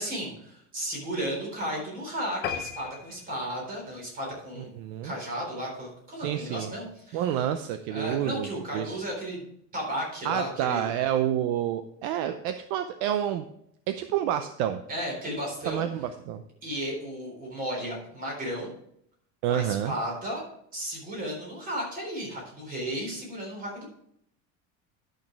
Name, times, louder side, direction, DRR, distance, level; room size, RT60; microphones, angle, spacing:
voice 1, 0.0-4.7 5.0-7.3 7.9-9.4 9.7-10.9 14.9-15.9 16.6-18.7 19.5-20.4 20.7-23.8, equal, 25° right, -1 dB, 4.0 m, -34 dB
sound 1, 2.4-5.2 5.7-5.9 6.3-6.4 6.7-6.8 7.0-7.1, left 7 dB, 30° left, 0.9 m, -38 dB
voice 2, 4.8-5.1 6.2-6.7 7.1-8.5 8.7-9.0 10.2-13.5 13.9-14.8 15.7-16.4 19.4-19.9, right 10 dB, 60° right, 9 dB, 0.6 m, -28 dB
10.5 x 6.5 x 4.5 m, 0.71 s
cardioid pair, 175°, 35 cm